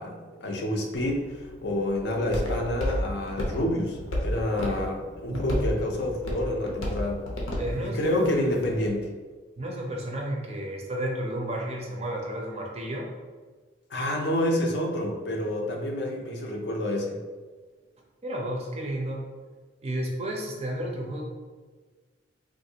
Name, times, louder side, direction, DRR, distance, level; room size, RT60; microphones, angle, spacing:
voice 1, 0.0-7.2 7.8-9.1 13.9-17.2, left 1 dB, 55° left, 1 dB, 0.5 m, -28 dB
Walk footsteps, 0.9-8.9, equal, 90° left, 0.7 m, -33 dB
voice 2, 7.6-8.1 9.6-13.0 18.2-19.2 19.8-21.2, right 1 dB, 30° right, 0 dB, 0.5 m, -32 dB
3.6 x 2.5 x 2.7 m, 1.4 s
head